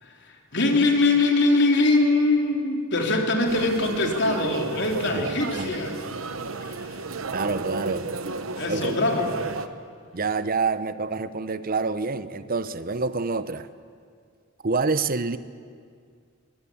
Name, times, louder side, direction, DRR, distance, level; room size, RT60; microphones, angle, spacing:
voice 1, 0.0-6.0 6.5-7.0 8.5-9.3, left 2 dB, 60° left, 2 dB, 3.5 m, -23 dB
sound 1, 3.4-9.7, right 3 dB, 80° right, 1.1 m, -33 dB
voice 2, 5.1-5.7 7.3-8.1 8.7-9.0 10.1-13.7 14.6-15.4, right 4 dB, 45° right, 14 dB, 0.8 m, -27 dB
23.0 x 22.5 x 8.6 m, 2.1 s
head